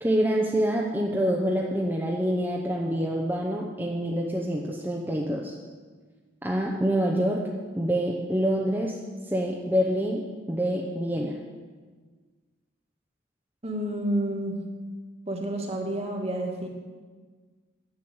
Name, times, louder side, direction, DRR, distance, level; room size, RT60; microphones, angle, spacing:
voice 1, 0.0-5.5 6.4-7.5 7.7-9.0 9.3-11.4, equal, 10° right, -2 dB, 0.8 m, -26 dB
voice 2, 13.6-14.6 15.3-16.7, right 1 dB, 35° right, 2 dB, 1.7 m, -29 dB
11.0 x 7.3 x 7.9 m, 1.5 s
head